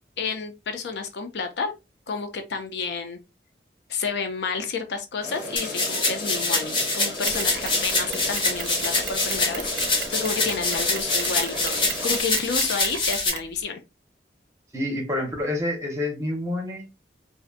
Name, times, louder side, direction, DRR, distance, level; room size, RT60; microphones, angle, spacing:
voice 1, 0.2-1.7 2.1-3.2 3.9-13.8, left 5 dB, 75° left, 0.4 m, -30 dB
sound 1, 5.2-12.2, left 1 dB, 90° left, 1.1 m, -36 dB
sound 2, 5.6-13.3, left 3 dB, 30° left, 0.6 m, -25 dB
Mechanisms, 7.3-13.6, right 6 dB, 90° right, 0.5 m, -36 dB
voice 2, 14.7-16.9, left 1 dB, 15° right, 0.6 m, -28 dB
2.5 x 2.1 x 2.4 m
head